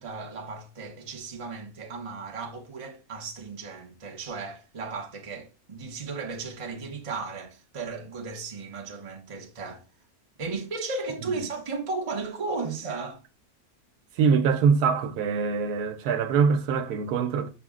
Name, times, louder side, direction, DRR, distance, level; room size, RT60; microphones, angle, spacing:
voice 1, 0.0-9.8 10.4-13.2, right 4 dB, 30° right, 0.6 m, -35 dB
voice 2, 14.2-17.5, right 6 dB, 80° right, 1.1 m, -23 dB
6.1 x 2.1 x 3.6 m
omnidirectional pair, 1.6 m